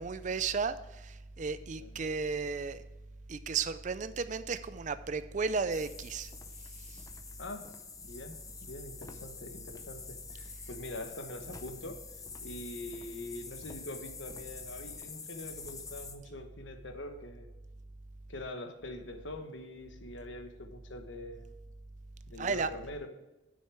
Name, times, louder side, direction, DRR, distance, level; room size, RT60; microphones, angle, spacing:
voice 1, 0.0-2.8 3.3-6.3 6.8-7.0 22.4-22.7, right 5 dB, 40° right, 13 dB, 0.4 m, -34 dB
sound 1, 5.7-16.2, left 5 dB, 20° left, 0.6 m, -47 dB
voice 2, 8.0-12.0 12.4-17.5 18.3-21.5 22.3-23.1, left 1 dB, 75° left, 6 dB, 1.2 m, -44 dB
9.6 x 6.5 x 4.7 m, 1.0 s
head